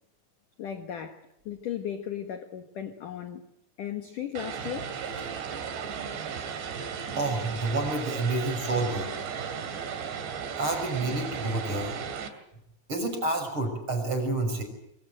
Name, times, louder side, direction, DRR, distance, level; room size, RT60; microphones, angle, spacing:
voice 1, 0.6-3.4 3.8-5.3, left 9 dB, 65° left, 7 dB, 2.2 m, -36 dB
Vehicle, 4.4-12.3, right 7 dB, 60° right, 4.7 m, -35 dB
voice 2, 7.1-9.1 10.6-11.9 12.9-14.6, right 2 dB, 25° right, 5 dB, 6.6 m, -29 dB
26.0 x 24.0 x 7.8 m, 0.78 s
omnidirectional pair, 5.7 m